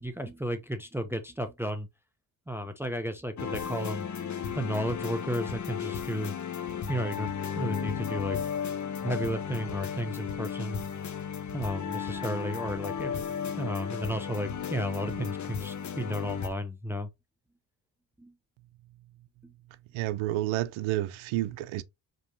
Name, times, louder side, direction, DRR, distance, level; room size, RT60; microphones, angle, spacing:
voice 1, 0.0-1.9 2.5-4.1 4.5-6.3 6.9-8.4 9.0-10.8 11.5-13.2 13.5-17.1 18.2-18.3 19.4-19.5, equal, 5° right, 0.7 m, -33 dB
sound 1, 3.4-16.5, left 7 dB, 40° left, 1.0 m, -34 dB
voice 2, 19.9-21.8, right 15 dB, 80° right, 0.6 m, -30 dB
5.1 x 3.0 x 2.7 m
cardioid pair, 90°, 46 cm